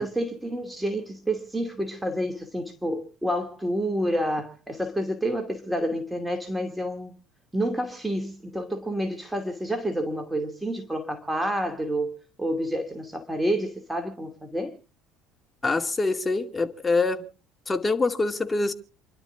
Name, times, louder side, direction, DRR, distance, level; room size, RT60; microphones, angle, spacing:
voice 1, 0.0-7.1 7.5-12.1 12.4-14.7, equal, 5° right, 2.5 m, -29 dB
voice 2, 15.6-17.2 17.7-18.7, left 3 dB, 20° left, 2.2 m, -25 dB
29.0 x 12.0 x 2.5 m
figure-of-eight pair, 60°, 0 cm